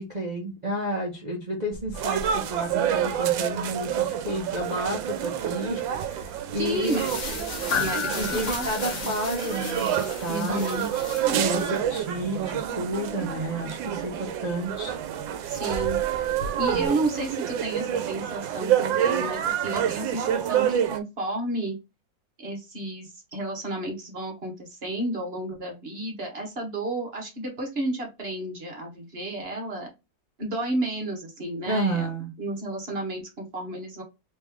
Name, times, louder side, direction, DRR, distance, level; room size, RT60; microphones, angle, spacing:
voice 1, 0.0-7.0 8.2-10.7 11.4-11.6 11.9-15.0 16.7-16.9 31.7-32.3, right 1 dB, 65° right, -3 dB, 0.4 m, -31 dB
sound 1, 1.7-16.9, left 4 dB, 50° left, 0.9 m, -39 dB
sound 2, 1.9-21.0, right 10 dB, 90° right, 1.3 m, -28 dB
sound 3, 6.6-11.8, left 4 dB, 90° left, 0.4 m, -37 dB
voice 2, 6.6-7.1 7.7-9.1 10.3-10.9 11.2-11.8 15.5-16.0 16.3-21.8 22.4-29.9 30.4-32.1 32.4-34.0, right 1 dB, 40° right, 1 dB, 1.1 m, -32 dB
3.4 x 3.1 x 3.5 m, 0.25 s
omnidirectional pair, 2.0 m